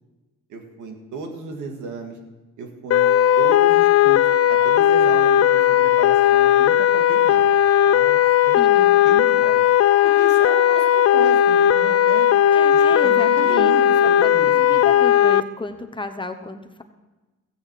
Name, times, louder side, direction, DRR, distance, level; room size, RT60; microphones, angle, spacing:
voice 1, 0.5-2.2 2.6-3.1 3.4-8.2 8.5-9.6 10.0-12.3 12.7-14.9, right 4 dB, 85° right, 4 dB, 1.9 m, -34 dB
sound 1, 2.9-15.4, left 10 dB, 55° left, 0.5 m, -16 dB
voice 2, 8.5-9.0 12.5-13.8 14.2-16.8, left 3 dB, 15° left, 6 dB, 1.0 m, -32 dB
15.0 x 9.6 x 4.7 m, 1.1 s
cardioid pair, 90°, 30 cm